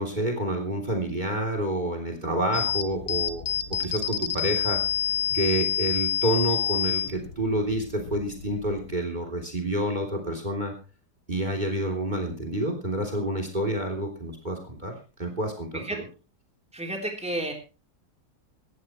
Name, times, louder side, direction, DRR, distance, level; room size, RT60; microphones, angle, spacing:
voice 1, 0.0-3.4 3.8-4.8 5.3-10.7 11.3-14.9 15.2-16.1, right 1 dB, 25° right, 4 dB, 3.4 m, -28 dB
sound 1, 2.5-8.9, left 9 dB, 45° left, 1.1 m, -28 dB
voice 2, 16.7-17.5, right 1 dB, 5° right, 2 dB, 3.5 m, -31 dB
19.0 x 15.0 x 3.1 m, 0.32 s
omnidirectional pair, 1.7 m